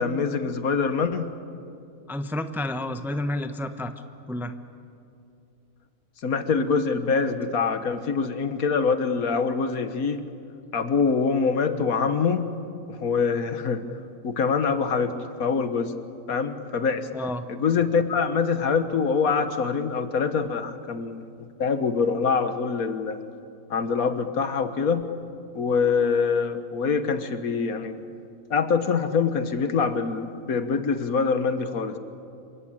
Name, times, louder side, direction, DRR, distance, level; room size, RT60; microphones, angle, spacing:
voice 1, 0.0-1.3 6.2-10.2 10.7-12.5 12.9-13.8 14.2-15.1 15.4-15.9 16.3-17.1 17.5-23.2 23.7-25.1 25.6-28.0 28.5-32.0, left 5 dB, 80° left, 10 dB, 1.7 m, -24 dB
voice 2, 2.1-3.9 4.3-4.5 17.1-17.4, left 1 dB, ahead, 8 dB, 0.8 m, -30 dB
27.0 x 23.5 x 8.8 m, 2.6 s
omnidirectional pair, 1.5 m